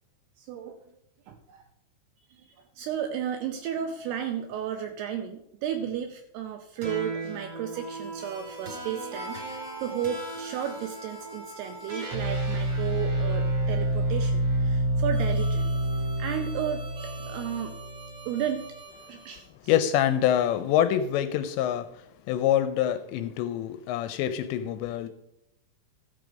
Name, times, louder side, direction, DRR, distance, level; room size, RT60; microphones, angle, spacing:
voice 1, 0.4-0.8 1.3-1.6 2.3-17.7 18.3-18.7 19.1-19.7, right 9 dB, 80° right, 6 dB, 2.4 m, -34 dB
sound 1, 6.8-19.3, right 1 dB, 40° right, 1.8 m, -30 dB
voice 2, 19.7-25.1, left 11 dB, 80° left, 10 dB, 2.7 m, -26 dB
13.5 x 7.0 x 5.2 m, 0.82 s
omnidirectional pair, 5.4 m